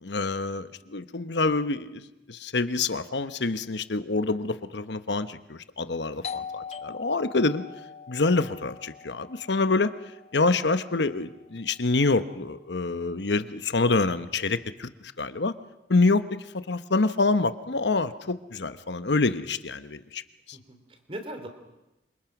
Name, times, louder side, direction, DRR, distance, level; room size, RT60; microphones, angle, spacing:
voice 1, 0.0-7.6 8.1-9.9 10.3-15.5 15.9-16.2 16.5-20.2 20.5-20.6, left 3 dB, 85° left, 12 dB, 1.0 m, -26 dB
Doorbell, 6.2-11.6, left 6 dB, 35° left, 0.8 m, -42 dB
voice 2, 20.5-21.5, right 1 dB, 30° right, 7 dB, 3.1 m, -40 dB
27.5 x 26.0 x 6.1 m, 0.95 s
head